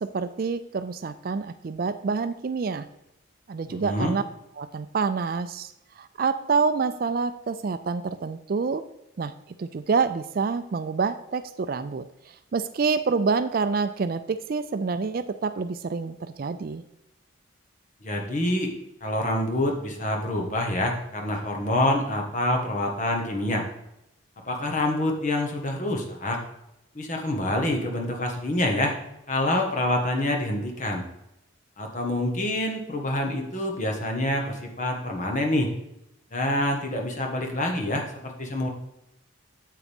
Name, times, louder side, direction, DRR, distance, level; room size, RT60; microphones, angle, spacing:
voice 1, 0.0-2.9 3.5-4.2 4.6-5.7 6.0-8.8 9.2-9.3 9.6-12.0 12.5-16.8, right 5 dB, 45° right, 12 dB, 0.4 m, -27 dB
voice 2, 3.7-4.1 18.0-18.7 19.0-23.6 24.5-26.4 26.9-29.0 29.3-31.0 31.8-35.7 36.3-38.7, left 1 dB, 35° left, 2 dB, 1.5 m, -26 dB
8.7 x 8.2 x 3.6 m, 0.85 s
head